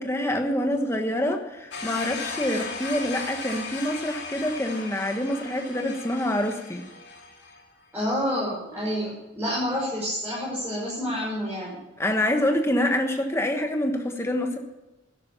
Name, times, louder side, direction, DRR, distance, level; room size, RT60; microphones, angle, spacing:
voice 1, 0.0-6.8 12.0-14.6, left 1 dB, 15° left, 4 dB, 1.3 m, -26 dB
sound 1, 1.7-7.6, left 4 dB, 65° left, 2.6 m, -36 dB
voice 2, 7.9-11.8, equal, 10° right, -9 dB, 6.1 m, -28 dB
12.0 x 11.5 x 7.0 m, 1.0 s
head